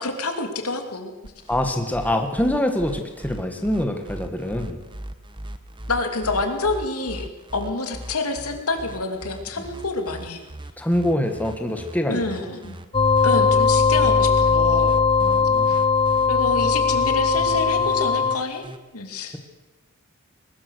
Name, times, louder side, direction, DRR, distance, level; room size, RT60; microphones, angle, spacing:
voice 1, 0.0-1.3 5.9-7.3 7.5-10.4 12.1-12.8 13.2-15.0 15.7-15.8 16.3-18.6 18.9-19.4, left 3 dB, 85° left, 5 dB, 2.7 m, -27 dB
sound 1, 1.2-18.8, right 1 dB, 20° right, 1.1 m, -39 dB
voice 2, 1.5-4.8 10.8-12.3 15.2-15.8, left 1 dB, 5° left, 5 dB, 1.7 m, -24 dB
sound 2, 12.9-18.4, left 5 dB, 25° left, 0.8 m, -19 dB
21.5 x 19.5 x 6.5 m, 1.1 s
head